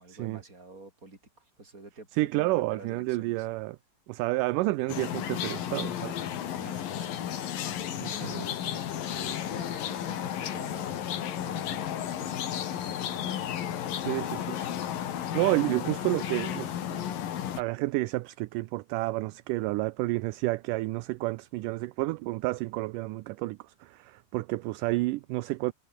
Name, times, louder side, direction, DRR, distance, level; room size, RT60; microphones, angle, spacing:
voice 1, 0.0-3.5 6.5-7.4 7.9-11.1 11.4-13.9, right 3 dB, 20° right, 5.7 m, -49 dB
voice 2, 2.1-3.8 4.1-6.2 8.0-8.5 14.0-14.7 15.3-17.0 17.6-25.7, right 20 dB, 80° right, 2.0 m, -30 dB
sound 1, 4.9-17.6, left 10 dB, 75° left, 3.6 m, -33 dB
omnidirectional pair, 4.1 m